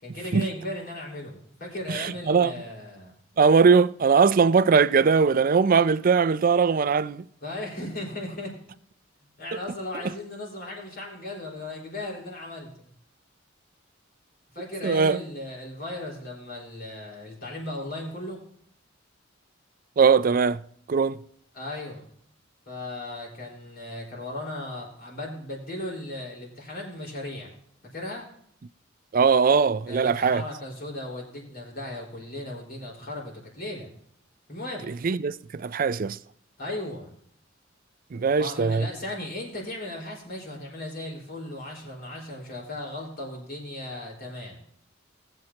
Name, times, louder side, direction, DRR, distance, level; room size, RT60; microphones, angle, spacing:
voice 1, 0.0-3.1 7.4-8.5 9.4-12.9 14.5-18.4 21.5-22.0 22.7-27.5 27.9-28.3 29.9-33.9 34.5-34.9 36.6-37.1 38.4-44.6, left 1 dB, 50° left, 4.5 m, -36 dB
voice 2, 1.9-2.5 3.4-7.3 14.8-15.2 20.0-20.6 20.9-21.2 29.1-30.4 34.9-36.2 38.1-38.9, right 5 dB, 45° right, 0.4 m, -20 dB
20.0 x 7.9 x 2.9 m
head